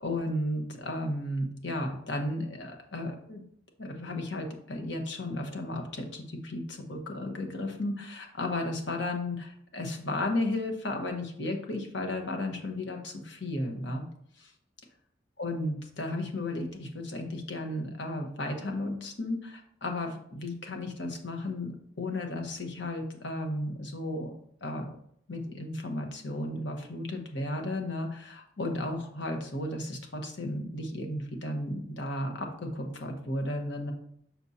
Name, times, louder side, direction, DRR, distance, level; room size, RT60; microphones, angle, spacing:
voice 1, 0.0-3.4 3.8-14.0 14.4-14.5 15.4-24.3 24.6-24.8 25.3-33.9, left 1 dB, 80° left, 3 dB, 1.1 m, -34 dB
6.1 x 6.0 x 2.7 m, 0.68 s
head